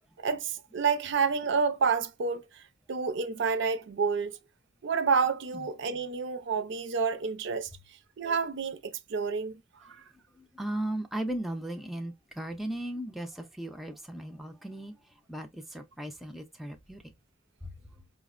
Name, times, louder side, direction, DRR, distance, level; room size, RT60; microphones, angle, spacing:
voice 1, 0.2-2.6 2.9-4.3 4.8-7.7 8.2-9.6 9.8-10.0, right 5 dB, 60° right, 0.5 m, -29 dB
voice 2, 10.3-17.0 17.6-18.0, right 1 dB, ahead, 0.4 m, -37 dB
4.8 x 2.0 x 2.3 m
head